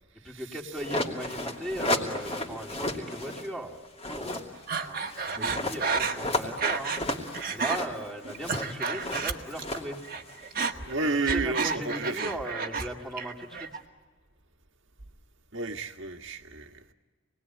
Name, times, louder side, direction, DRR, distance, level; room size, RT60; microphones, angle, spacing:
voice 1, 0.1-3.8 4.1-4.4 4.8-7.1 7.5-10.0 11.0-13.8, right 1 dB, ahead, 3.2 m, -38 dB
sound 1, 0.8-3.5 3.8-10.9, left 1 dB, 30° left, 2.7 m, -34 dB
Breathing, 4.7-7.1 7.3-7.8 8.2-9.8 10.0-12.9 13.2-13.8, right 5 dB, 40° right, 1.5 m, -31 dB
voice 2, 5.3-5.7 10.8-12.3 15.5-16.9, right 3 dB, 60° right, 1.7 m, -32 dB
28.0 x 20.5 x 9.6 m
head